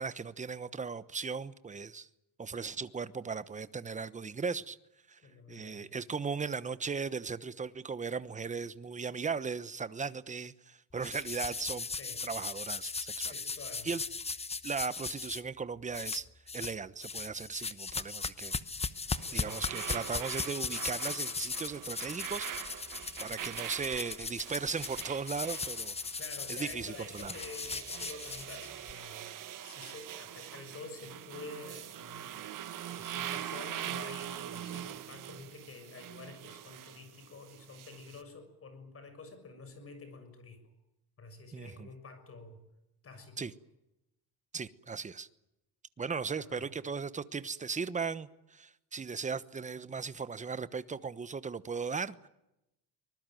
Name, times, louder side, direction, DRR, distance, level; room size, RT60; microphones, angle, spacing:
voice 1, 0.0-2.1 2.4-4.8 5.1-5.2 5.5-11.9 12.2-13.3 13.8-14.0 14.6-16.3 16.5-18.5 19.3-22.9 23.2-26.0 26.5-27.3 41.5-41.9 43.4-43.5 44.5-45.3 46.0-52.3, right 5 dB, 20° right, 1.0 m, -37 dB
voice 2, 5.2-6.0 12.0-12.2 13.2-13.9 19.2-19.7 26.2-29.2 29.6-32.5 32.9-40.6 41.2-42.6 43.0-43.5 46.3-46.7, left 3 dB, 35° left, 6.6 m, -49 dB
sound 1, 11.0-15.4 15.9-16.8 17.0-28.9, left 4 dB, 15° left, 0.9 m, -38 dB
sound 2, 18.9-38.2, right 11 dB, 55° right, 1.8 m, -43 dB
24.5 x 20.5 x 9.2 m
cardioid pair, 135°, 39 cm